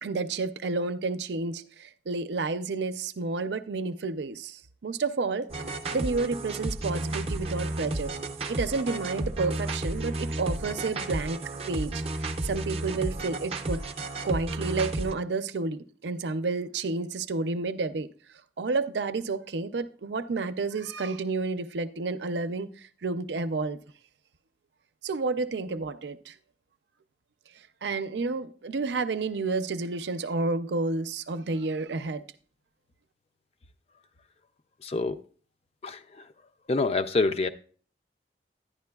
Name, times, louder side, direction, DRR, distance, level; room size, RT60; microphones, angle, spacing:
voice 1, 0.0-5.5 5.9-8.1 8.5-11.4 11.7-13.8 14.2-18.1 18.6-23.8 25.0-26.3 27.8-32.2, right 3 dB, 85° right, 0.5 m, -30 dB
sound 1, 5.5-15.1, right 2 dB, 35° right, 0.5 m, -32 dB
voice 2, 34.8-35.2 35.8-36.0 36.7-37.5, left 3 dB, 35° left, 0.4 m, -26 dB
11.0 x 9.6 x 2.3 m
head